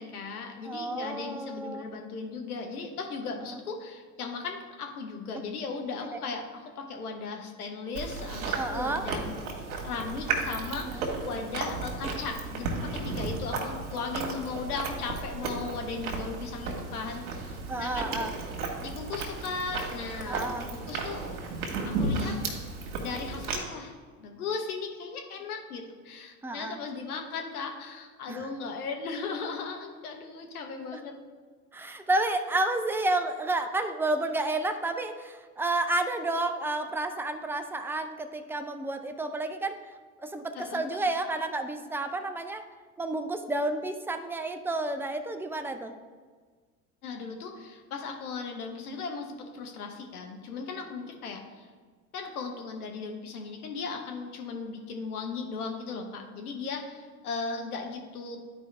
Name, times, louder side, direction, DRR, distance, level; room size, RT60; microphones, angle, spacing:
voice 1, 0.0-9.3 9.8-18.3 18.8-21.2 21.8-22.4 23.0-31.2 40.5-40.8 47.0-51.7 52.1-58.4, left 4 dB, 85° left, 3 dB, 1.2 m, -37 dB
voice 2, 0.6-1.9 3.4-3.6 8.5-9.1 10.8-11.1 17.7-18.3 20.3-20.7 26.4-26.8 28.3-28.5 30.9-31.0 31.7-39.8 40.2-42.6 43.0-46.0, right 2 dB, 5° right, 7 dB, 0.5 m, -31 dB
Chewing mastication, 8.0-23.6, right 3 dB, 75° right, 1.6 m, -34 dB
11.5 x 4.8 x 3.3 m, 1.5 s
hypercardioid pair, 75°, 44 cm